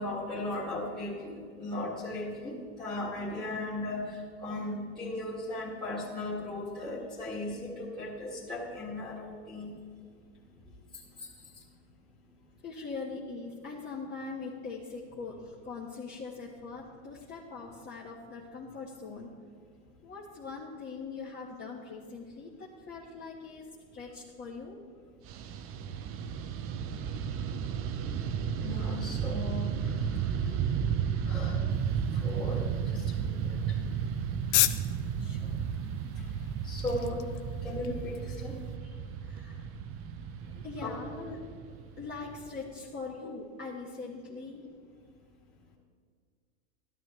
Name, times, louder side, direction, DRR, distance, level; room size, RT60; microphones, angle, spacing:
voice 1, 0.0-2.5 2.8-9.7 11.2-11.3 28.6-30.0 30.4-30.6 31.3-31.6 32.1-33.8 36.2-36.3 36.6-37.2 37.6-38.5 40.8-40.9, left 2 dB, 15° left, -8 dB, 2.0 m, -37 dB
voice 2, 12.6-19.3 20.0-24.8 34.1-34.2 35.2-35.7 38.8-39.7 40.4-41.5 42.0-44.7, left 4 dB, 30° left, -5 dB, 1.5 m, -42 dB
Fixed-wing aircraft airplane, 25.2-42.7, right 7 dB, 40° right, 0.7 m, -33 dB
sound 1, 31.7-38.8, left 15 dB, 80° left, 0.7 m, -36 dB
13.5 x 12.5 x 3.1 m, 2.1 s
supercardioid pair, 120°, 33 cm